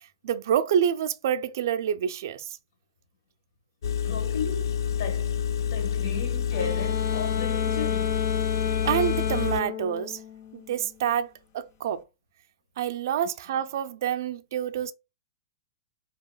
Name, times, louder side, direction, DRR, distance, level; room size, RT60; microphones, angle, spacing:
voice 1, 0.2-2.5 8.8-10.2 10.5-12.0 12.8-14.9, right 9 dB, 50° right, 0.4 m, -27 dB
Engine, 3.8-9.6, left 8 dB, 90° left, 0.3 m, -28 dB
voice 2, 4.0-8.2, left 5 dB, 50° left, 1.2 m, -36 dB
sound 1, 6.5-11.0, left 8 dB, 35° left, 0.6 m, -32 dB
4.8 x 2.9 x 3.8 m
supercardioid pair, 180°, 2 cm